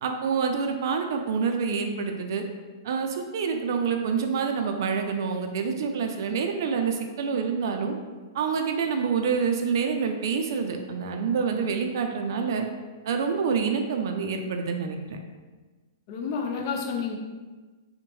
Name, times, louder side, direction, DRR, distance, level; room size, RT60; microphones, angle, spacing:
voice 1, 0.0-2.4 2.8-7.9 8.3-12.7 13.0-15.2, right 5 dB, 60° right, 4 dB, 0.3 m, -27 dB
voice 2, 16.1-17.2, left 5 dB, 45° left, 2 dB, 0.4 m, -30 dB
2.7 x 2.1 x 3.0 m, 1.3 s
hypercardioid pair, 150°, 2 cm